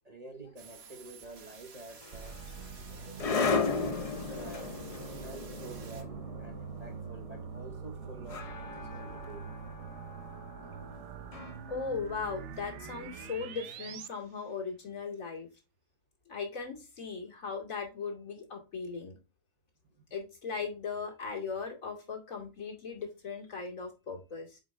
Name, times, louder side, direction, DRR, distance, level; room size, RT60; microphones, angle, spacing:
voice 1, 0.0-2.4 3.4-4.8 5.2-9.5, right 2 dB, 35° right, 0.8 m, -49 dB
sound 1, 0.6-6.0, right 5 dB, 90° right, 1.8 m, -53 dB
sound 2, 2.0-13.1, left 4 dB, 45° left, 0.4 m, -37 dB
sound 3, 2.1-14.1, right 7 dB, 65° right, 0.9 m, -44 dB
voice 2, 11.7-15.5 16.3-19.2 20.1-24.6, left 5 dB, 70° left, 2.7 m, -38 dB
7.5 x 4.8 x 3.2 m
omnidirectional pair, 1.5 m